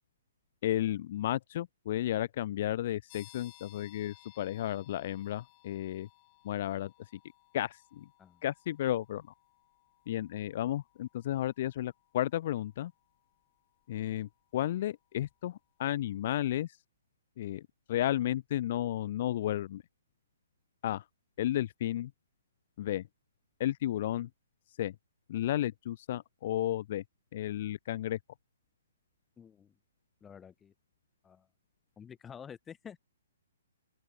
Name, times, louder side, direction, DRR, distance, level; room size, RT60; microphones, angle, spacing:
voice 1, 0.6-6.1 6.4-6.9 7.5-8.1 8.4-9.2 10.1-12.9 13.9-16.8 17.4-17.6 17.9-19.8 20.8-21.0 21.4-22.1 22.8-23.0 23.6-24.3 24.8-24.9 25.3-27.0 27.3-28.2, left 13 dB, 50° left, 0.4 m, -33 dB
sound 1, 3.1-15.6, left 40 dB or more, 35° left, 4.8 m, -62 dB
voice 2, 29.4-29.7 30.2-30.7 31.2-31.5 32.0-33.0, left 7 dB, 15° left, 1.1 m, -49 dB
open air
figure-of-eight pair, 130°, 0 cm